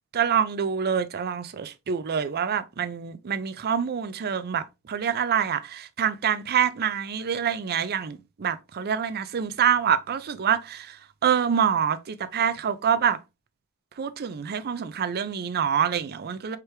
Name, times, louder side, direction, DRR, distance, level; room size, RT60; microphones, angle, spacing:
voice 1, 0.1-11.0 11.2-13.2 14.0-16.6, right 8 dB, 45° right, 0.5 m, -26 dB
4.8 x 3.4 x 3.0 m
head